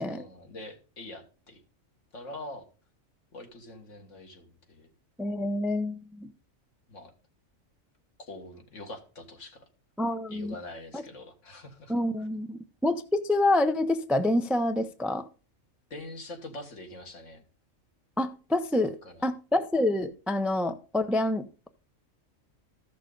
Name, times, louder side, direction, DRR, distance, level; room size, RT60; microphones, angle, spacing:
voice 1, 0.1-1.6 2.1-2.7 3.3-4.9 6.9-7.1 8.2-9.7 10.3-11.9 15.9-17.4 19.0-19.3, left 1 dB, 65° left, 4 dB, 2.0 m, -44 dB
voice 2, 5.2-6.3 10.0-10.5 10.9-11.0 11.9-15.2 18.2-19.0 19.2-21.7, left 1 dB, ahead, 9 dB, 0.3 m, -27 dB
14.0 x 6.4 x 3.9 m, 0.35 s
omnidirectional pair, 1.4 m